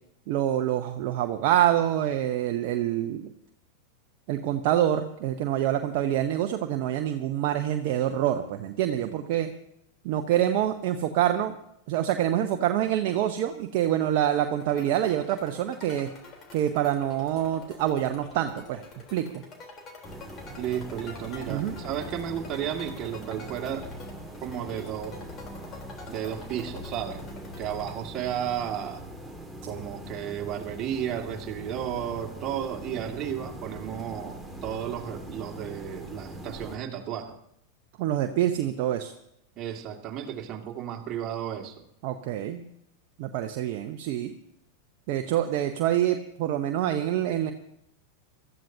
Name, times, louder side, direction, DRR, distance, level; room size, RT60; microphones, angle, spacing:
voice 1, 0.3-3.3 4.3-9.5 10.0-11.5 11.9-16.1 16.5-18.8 19.1-19.4 21.5-21.8 38.0-39.1 42.0-42.6 43.2-44.3 45.1-47.5, right 11 dB, 55° right, 5 dB, 0.9 m, -26 dB
sound 1, 14.6-27.9, left 3 dB, 35° left, 3.6 m, -47 dB
sound 2, 20.0-36.8, equal, ahead, 2.2 m, -42 dB
voice 2, 20.6-23.9 24.4-25.2 26.1-27.2 27.6-29.0 29.7-37.3 39.6-41.8, right 9 dB, 35° right, 2 dB, 2.0 m, -33 dB
24.5 x 13.5 x 2.8 m, 0.76 s
hypercardioid pair, 95°, 0 cm